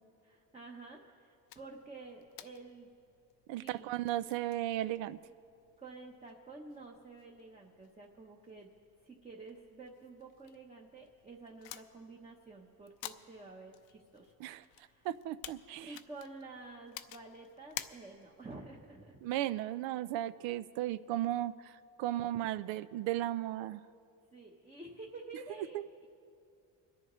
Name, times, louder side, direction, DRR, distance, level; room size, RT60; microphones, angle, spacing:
voice 1, 0.2-2.9 3.5-3.9 5.8-8.7 9.0-15.1 15.8-19.2 22.0-22.3 24.3-26.1, right 3 dB, 15° right, -1 dB, 0.9 m, -50 dB
sound 1, 1.5-18.5, left 13 dB, 80° left, 0.7 m, -53 dB
voice 2, 3.5-5.2 14.4-14.6 15.0-16.0 19.2-23.8 25.7-25.9, right 13 dB, 80° right, 15 dB, 0.5 m, -35 dB
25.5 x 10.5 x 3.1 m, 2.4 s
cardioid pair, 125°, 45 cm